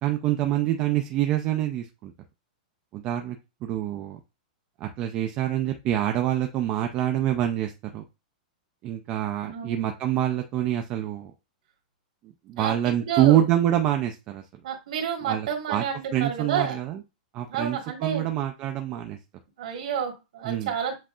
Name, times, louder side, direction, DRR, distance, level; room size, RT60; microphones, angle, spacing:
voice 1, 0.0-2.1 2.9-4.2 4.8-8.0 8.8-11.3 12.5-14.4 15.2-15.8 16.1-17.0 17.3-19.2 20.4-20.7, right 12 dB, 25° right, 4 dB, 0.4 m, -26 dB
voice 2, 9.4-9.9 12.6-13.4 14.6-16.8 17.5-18.3 19.6-21.0, right 7 dB, 60° right, 3 dB, 1.5 m, -30 dB
7.5 x 2.7 x 2.4 m, 0.26 s
supercardioid pair, 170°, 5 cm